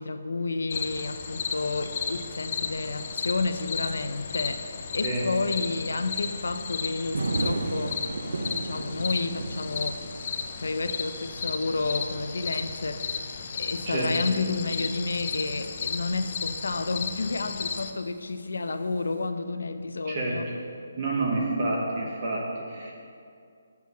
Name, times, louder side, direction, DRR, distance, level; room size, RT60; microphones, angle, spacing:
voice 1, 0.0-8.1 8.4-10.0 10.6-13.3 13.5-20.5, left 3 dB, 85° left, 9 dB, 0.5 m, -31 dB
sound 1, 0.7-17.9, left 6 dB, 30° left, 0.4 m, -34 dB
sound 2, 7.1-17.3 18.7-18.9, right 2 dB, 80° right, 0.5 m, -36 dB
voice 2, 13.8-14.3 20.1-20.5 21.0-22.9, right 2 dB, 25° right, -2 dB, 0.9 m, -29 dB
7.3 x 5.9 x 6.2 m, 2.4 s
hypercardioid pair, 175°, 0 cm